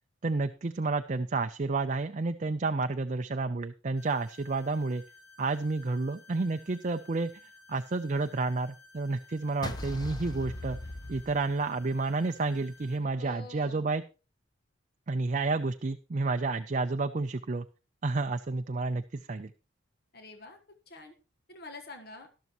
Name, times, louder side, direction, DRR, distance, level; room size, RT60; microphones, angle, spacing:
voice 1, 0.2-5.0 5.4-7.3 7.7-10.8 11.1-14.0 15.1-17.7 18.0-19.5, right 3 dB, 35° right, 8 dB, 0.4 m, -30 dB
sound 1, 4.0-13.0, left 3 dB, 75° left, 4.8 m, -56 dB
sound 2, 9.6-12.0, left 1 dB, 20° left, 0.7 m, -39 dB
voice 2, 13.2-13.9 20.1-21.1 21.5-22.3, left 2 dB, 50° left, 5 dB, 1.3 m, -47 dB
12.5 x 12.5 x 3.0 m, 0.32 s
head